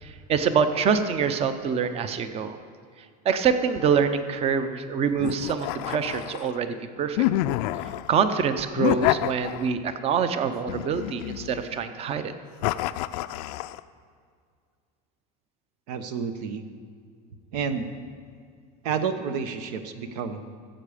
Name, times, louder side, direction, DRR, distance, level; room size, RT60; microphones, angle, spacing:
voice 1, 0.0-2.6 3.2-7.2 8.1-12.3, right 6 dB, 30° right, 10 dB, 0.7 m, -25 dB
sound 1, 5.2-6.6 7.2-8.1 8.8-9.9 10.7-11.8 12.6-13.8, left 15 dB, 75° left, 0.4 m, -28 dB
voice 2, 15.9-16.7 17.5-17.9 18.8-20.4, right 6 dB, 80° right, 9 dB, 1.0 m, -30 dB
14.5 x 7.6 x 5.0 m, 2.1 s
supercardioid pair, 140°, 20 cm